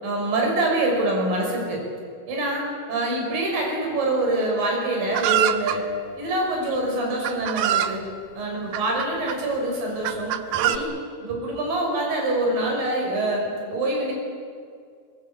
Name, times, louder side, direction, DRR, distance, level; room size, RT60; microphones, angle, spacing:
voice 1, 0.0-1.8 2.3-2.6 2.9-5.8 6.2-8.0 8.4-10.9 11.2-14.1, right 2 dB, 45° right, 0 dB, 7.1 m, -25 dB
Chicken rooster, 5.1-5.8 6.7-6.8 7.2-8.0 8.7-9.4 10.0-10.8, right 12 dB, 80° right, 2.2 m, -24 dB
23.0 x 22.0 x 8.8 m, 2.2 s
omnidirectional pair, 5.6 m